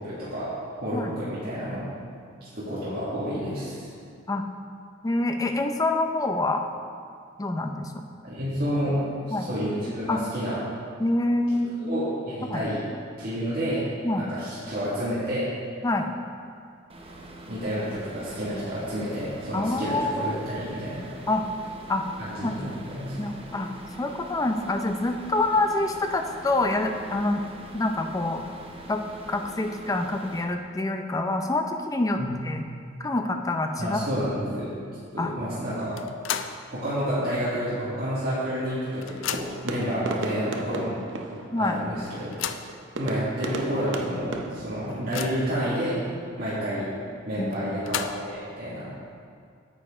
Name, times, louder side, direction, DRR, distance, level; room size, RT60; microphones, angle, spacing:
voice 1, 0.0-1.8 2.4-3.9 8.2-9.0 9.3-10.6 11.8-12.8 13.2-13.8 14.2-15.5 17.5-21.1 22.2-23.3 32.2-32.5 33.8-34.7 35.1-35.9 36.7-41.3 41.6-42.4 43.0-46.0 46.3-46.9 47.2-48.9, equal, 55° right, -11 dB, 1.8 m, -30 dB
voice 2, 5.0-6.6 7.4-8.0 9.3-9.5 10.1-10.2 11.0-11.9 12.4-12.6 14.0-14.3 15.8-16.1 19.5-20.3 21.3-21.5 21.9-22.0 22.4-22.6 23.2-23.7 24.0-27.4 27.7-28.5 28.9-29.0 29.3-32.6 33.0-34.0 35.2-35.3 41.5-41.8 47.4-47.8, left 2 dB, 20° left, 5 dB, 0.5 m, -26 dB
sound 1, 16.9-30.4, right 1 dB, 30° right, 0.8 m, -44 dB
sound 2, 36.0-36.7 37.1-37.2 38.2-38.3 38.6-39.7 40.5-40.6 41.0-41.1 42.1-42.8 43.5-43.6 44.0-44.1 44.5-45.6 47.5-48.4, left 9 dB, 80° left, 0.4 m, -34 dB
sound 3, 38.7-45.3, right 2 dB, 70° right, 0.7 m, -37 dB
9.3 x 7.0 x 3.6 m, 2.3 s
head